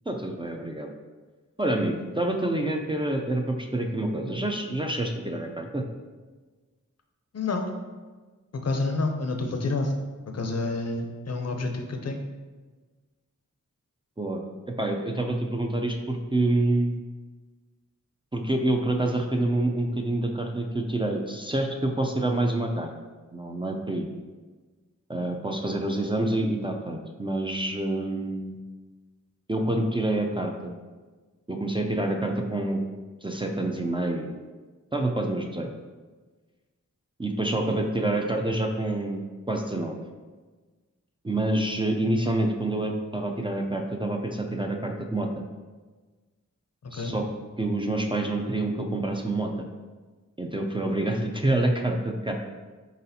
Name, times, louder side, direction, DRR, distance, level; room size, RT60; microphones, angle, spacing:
voice 1, 0.1-0.9 1.6-5.8 14.2-14.4 14.8-17.0 18.3-22.9 23.3-24.1 25.1-28.6 29.5-30.7 31.5-32.8 33.2-34.3 34.9-35.7 37.2-39.2 39.5-40.0 41.2-45.3 46.9-47.2 47.6-49.5 50.4-52.3, right 1 dB, 15° right, 2 dB, 0.4 m, -27 dB
voice 2, 7.3-7.7 8.6-9.9 10.3-12.2 46.9-47.1, left 3 dB, 55° left, 4 dB, 0.5 m, -28 dB
4.1 x 4.0 x 2.7 m, 1.3 s
wide cardioid pair, 65°, 31 cm